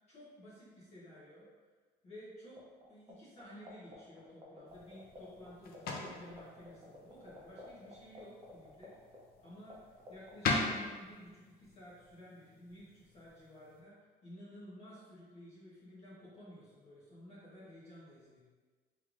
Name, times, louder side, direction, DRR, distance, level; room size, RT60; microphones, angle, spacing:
voice 1, 0.1-1.5 2.0-2.6 2.9-8.9 9.4-14.0 14.2-18.4, equal, 40° left, -9 dB, 1.1 m, -53 dB
sound 1, 2.6-3.1 3.4-5.5 5.7-5.8 6.0-9.7 10.0-10.3, right 2 dB, 30° right, 0.7 m, -51 dB
sound 2, 4.7-13.8, left 3 dB, 65° left, 0.6 m, -42 dB
3.4 x 3.2 x 2.5 m, 1.4 s
cardioid pair, 110°, 17 cm